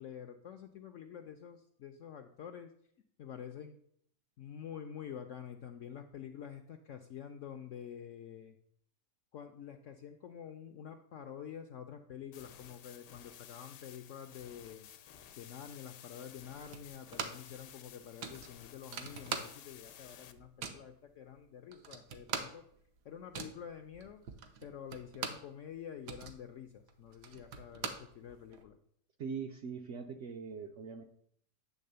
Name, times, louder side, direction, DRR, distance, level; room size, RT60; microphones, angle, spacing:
voice 1, 0.0-2.7 3.2-3.8 4.4-8.6 9.3-14.9 15.4-22.7 23.0-24.3 24.6-28.8, left 8 dB, 70° left, 6 dB, 0.7 m, -48 dB
sound 1, 12.3-20.3, left 10 dB, 90° left, 1.3 m, -54 dB
sound 2, 16.7-17.6 17.8-17.9 18.2-19.9 20.2-20.9 21.4-21.5 21.7-25.5 25.9-28.6, right 6 dB, 80° right, 1.4 m, -42 dB
voice 2, 29.2-31.0, right 5 dB, 65° right, 5 dB, 0.7 m, -42 dB
9.4 x 3.4 x 6.6 m, 0.67 s
omnidirectional pair, 1.8 m